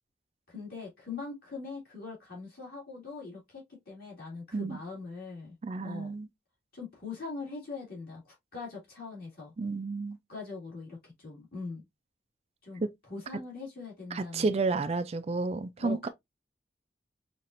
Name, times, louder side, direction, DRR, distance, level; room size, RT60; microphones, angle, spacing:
voice 1, 0.5-5.5 5.8-6.1 6.7-9.5 10.3-11.8 12.6-14.5 15.8-16.1, left 4 dB, 55° left, 2.3 m, -42 dB
voice 2, 5.6-6.3 9.6-10.2 12.8-12.9 14.1-16.1, right 3 dB, 35° right, 0.3 m, -31 dB
5.7 x 2.4 x 2.5 m
head